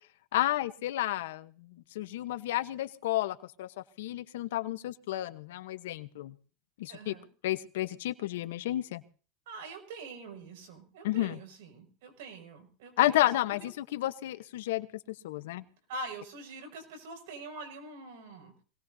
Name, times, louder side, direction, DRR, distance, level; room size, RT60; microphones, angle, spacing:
voice 1, 0.3-3.7 4.0-6.3 6.8-7.1 7.4-9.0 11.0-11.4 13.0-14.9 15.2-15.6, left 15 dB, 80° left, 12 dB, 1.0 m, -31 dB
voice 2, 6.9-7.3 9.5-13.3 13.6-13.7 15.9-18.5, right 2 dB, 75° right, 5 dB, 6.2 m, -44 dB
25.0 x 19.0 x 2.8 m, 0.39 s
supercardioid pair, 120°, 0 cm